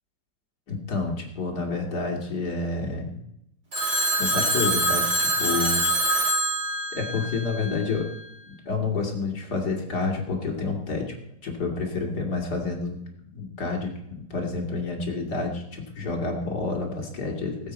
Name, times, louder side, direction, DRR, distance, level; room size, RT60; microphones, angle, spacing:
voice 1, 0.7-3.2 4.2-6.5 6.9-8.1 8.7-11.1 11.4-13.0 13.3-17.7, left 3 dB, 75° left, 0 dB, 3.0 m, -29 dB
Telephone, 3.7-8.0, right 1 dB, 50° right, 3.8 m, -25 dB
20.0 x 8.1 x 4.4 m, 0.79 s
omnidirectional pair, 1.8 m